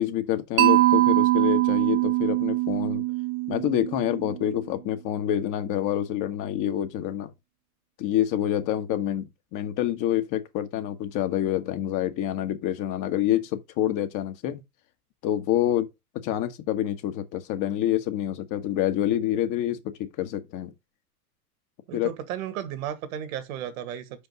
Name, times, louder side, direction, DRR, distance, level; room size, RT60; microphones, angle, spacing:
voice 1, 0.0-3.0 3.5-7.3 8.0-14.6 15.2-15.9 16.2-20.7 21.9-22.1, left 12 dB, 40° left, 1.4 m, -27 dB
Mallet percussion, 0.6-4.6, right 18 dB, 30° right, 0.5 m, -23 dB
voice 2, 21.9-24.3, right 10 dB, 60° right, 1.8 m, -34 dB
5.7 x 5.3 x 5.2 m
figure-of-eight pair, 85°, 46 cm